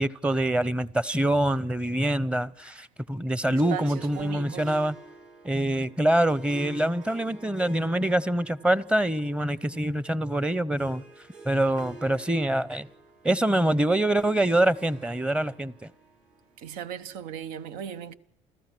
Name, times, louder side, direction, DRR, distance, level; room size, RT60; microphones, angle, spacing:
voice 1, 0.0-4.9 5.4-11.0 11.4-12.9 13.2-15.7, right 1 dB, 10° right, 0.8 m, -25 dB
voice 2, 3.5-4.8 16.6-18.1, right 9 dB, 85° right, 0.9 m, -37 dB
Harp, 3.6-17.2, right 3 dB, 60° right, 7.4 m, -49 dB
29.5 x 14.5 x 6.1 m
supercardioid pair, 90°, 14 cm